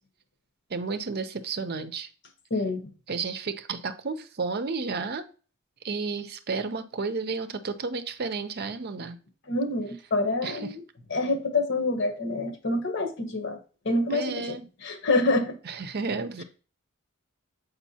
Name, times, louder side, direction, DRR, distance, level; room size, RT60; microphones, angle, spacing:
voice 1, 0.7-2.1 3.1-5.3 5.8-9.2 10.4-10.6 14.1-14.6 15.7-16.4, right 4 dB, 50° right, 0.6 m, -32 dB
voice 2, 2.5-2.9 9.5-10.8 11.1-13.6 13.8-15.6, left 2 dB, 60° left, 1.0 m, -27 dB
7.2 x 5.1 x 2.7 m
head